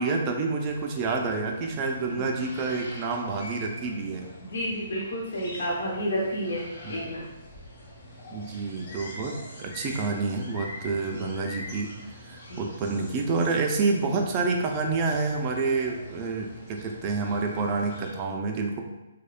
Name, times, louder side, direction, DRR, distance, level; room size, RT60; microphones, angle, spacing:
voice 1, 0.0-4.3 6.8-7.0 8.3-11.9 12.2-18.8, right 4 dB, 25° right, 2 dB, 0.3 m, -28 dB
sound 1, 0.6-18.1, left 1 dB, 35° left, 0.7 m, -44 dB
voice 2, 2.1-2.5 4.4-7.3 12.5-12.7, equal, 80° left, -4 dB, 0.7 m, -31 dB
2.8 x 2.1 x 2.4 m, 1.0 s
hypercardioid pair, 165°, 0 cm